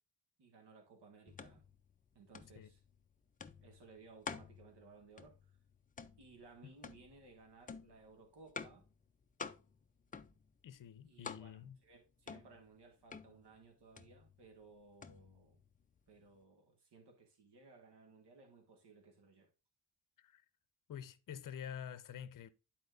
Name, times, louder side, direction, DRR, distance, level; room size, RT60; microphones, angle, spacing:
voice 1, 0.4-1.6 2.1-2.8 3.6-5.6 6.2-8.8 11.0-15.6 16.1-19.5, right 4 dB, 85° right, 1.7 m, -60 dB
sound 1, 1.3-16.4, left 5 dB, 25° left, 0.3 m, -52 dB
voice 2, 10.6-11.8 20.2-20.4 20.9-22.5, left 8 dB, 55° left, 0.6 m, -48 dB
11.5 x 4.3 x 2.5 m
wide cardioid pair, 180°, 40 cm